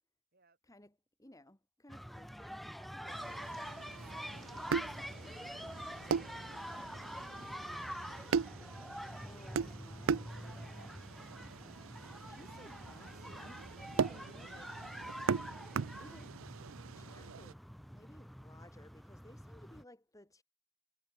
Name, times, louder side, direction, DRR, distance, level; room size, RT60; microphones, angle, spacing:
voice 1, 0.3-0.6 2.9-3.2, right 3 dB, 45° right, 4.1 m, -72 dB
voice 2, 1.2-3.7 9.1-11.1 12.2-14.7 16.0-16.4 16.9-20.4, left 1 dB, 15° left, 2.0 m, -59 dB
sound 1, 1.9-19.8, equal, ahead, 0.7 m, -46 dB
sound 2, 3.1-17.5, right 6 dB, 75° right, 0.5 m, -40 dB
head